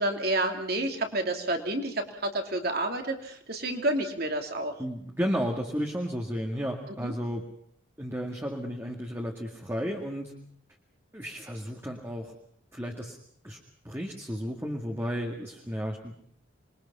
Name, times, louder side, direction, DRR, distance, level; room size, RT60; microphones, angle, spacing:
voice 1, 0.0-4.7 7.0-7.1, right 1 dB, 50° right, 4 dB, 3.0 m, -29 dB
voice 2, 4.8-7.4 8.0-10.3 11.1-12.3 12.7-13.2 13.4-13.6 13.8-16.2, equal, 10° right, 0 dB, 2.1 m, -33 dB
27.5 x 22.0 x 5.7 m, 0.65 s
head